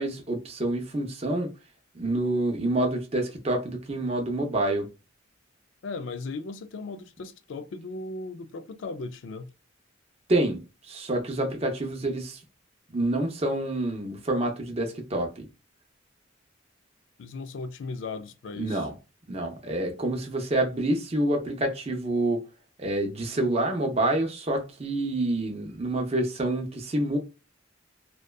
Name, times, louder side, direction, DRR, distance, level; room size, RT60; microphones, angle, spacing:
voice 1, 0.0-1.5 1.9-4.9 10.3-12.4 12.9-15.5 18.6-18.9 19.3-22.4 22.8-27.2, right 1 dB, 30° right, 0.6 m, -27 dB
voice 2, 5.8-9.5 17.2-18.9, left 3 dB, 70° left, 0.3 m, -37 dB
2.6 x 2.2 x 2.2 m
head